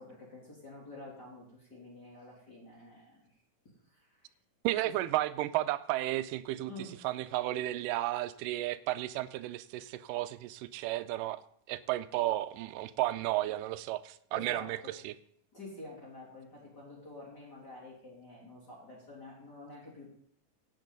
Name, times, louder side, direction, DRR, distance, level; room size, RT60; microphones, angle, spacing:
voice 1, 0.0-3.2 3.9-4.1 4.8-4.9 6.7-7.0 14.3-14.9 15.5-20.1, left 2 dB, 30° left, -5 dB, 3.5 m, -48 dB
voice 2, 4.6-6.7 7.0-11.4 11.7-15.1, right 15 dB, 85° right, 13 dB, 2.1 m, -33 dB
17.0 x 8.3 x 4.0 m, 0.65 s
omnidirectional pair, 3.8 m